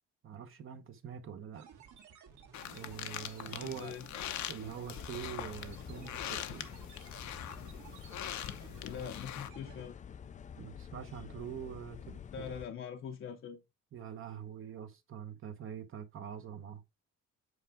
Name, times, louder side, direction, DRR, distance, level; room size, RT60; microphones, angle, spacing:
voice 1, 0.2-1.7 2.7-3.9 4.5-6.7 10.6-12.2 13.9-16.8, right 8 dB, 45° right, 0.9 m, -44 dB
sound 1, 1.5-9.9, right 7 dB, 80° right, 2.0 m, -56 dB
sound 2, 2.5-9.5, left 11 dB, 75° left, 0.8 m, -43 dB
voice 2, 3.4-4.1 8.8-10.0 12.3-13.6, left 7 dB, 45° left, 0.7 m, -43 dB
sound 3, 3.9-4.1 4.5-4.6 4.9-12.7, left 8 dB, 25° left, 0.3 m, -49 dB
8.2 x 4.7 x 3.6 m
cardioid pair, 170°, 29 cm